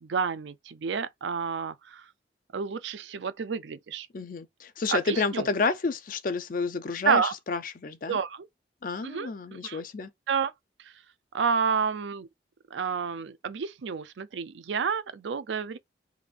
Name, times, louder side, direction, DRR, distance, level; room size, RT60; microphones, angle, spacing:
voice 1, 0.0-2.0 2.5-4.1 4.9-5.5 7.0-7.3 8.1-8.5 9.0-9.8 10.3-10.5 10.8-10.9 11.3-12.3 12.7-15.8, right 6 dB, 85° right, 0.5 m, -30 dB
voice 2, 4.1-8.2 8.8-10.1, left 4 dB, 50° left, 0.5 m, -30 dB
3.5 x 2.4 x 3.3 m
head